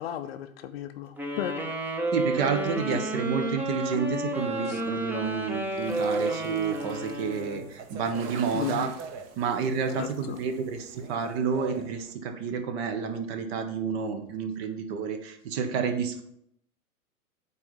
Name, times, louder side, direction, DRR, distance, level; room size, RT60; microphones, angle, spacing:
voice 1, 0.0-1.8 2.9-3.0 4.7-4.8 8.5-8.8 10.0-10.4, left 11 dB, 45° left, 10 dB, 0.7 m, -35 dB
sound 1, 1.2-7.7, right 1 dB, 5° right, 0.8 m, -31 dB
voice 2, 2.1-8.9 9.4-16.2, right 6 dB, 45° right, 7 dB, 1.5 m, -30 dB
sound 2, 5.2-12.1, right 6 dB, 30° right, 1.0 m, -44 dB
8.6 x 4.2 x 7.2 m, 0.72 s
hypercardioid pair, 125°, 43 cm